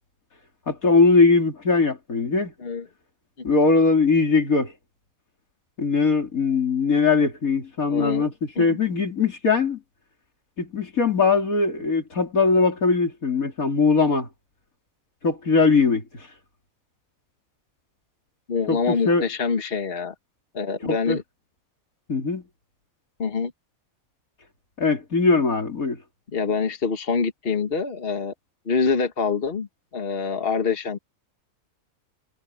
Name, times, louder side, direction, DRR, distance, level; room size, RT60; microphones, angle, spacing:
voice 1, 0.7-2.5 3.4-4.7 5.8-9.8 10.6-14.3 15.2-16.0 18.7-19.2 20.8-21.2 22.1-22.4 24.8-26.0, left 4 dB, 90° left, 3.8 m, -20 dB
voice 2, 7.9-8.3 8.6-8.8 18.5-20.1 20.5-21.2 23.2-23.5 26.3-28.3 28.7-29.7 29.9-31.0, left 5 dB, 45° left, 1.8 m, -25 dB
omnidirectional pair, 1.4 m